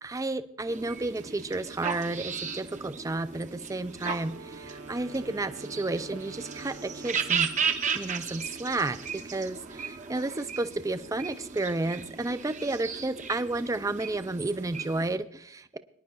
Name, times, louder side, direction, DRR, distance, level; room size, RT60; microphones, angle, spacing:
voice 1, 0.0-7.5 7.9-15.8, right 2 dB, 15° right, 12 dB, 0.3 m, -32 dB
sound 1, 0.7-15.2, right 6 dB, 35° right, 0.8 m, -36 dB
Wind instrument woodwind instrument, 4.0-7.5, right 4 dB, 75° right, 0.7 m, -47 dB
23.5 x 10.5 x 2.3 m, 0.71 s
head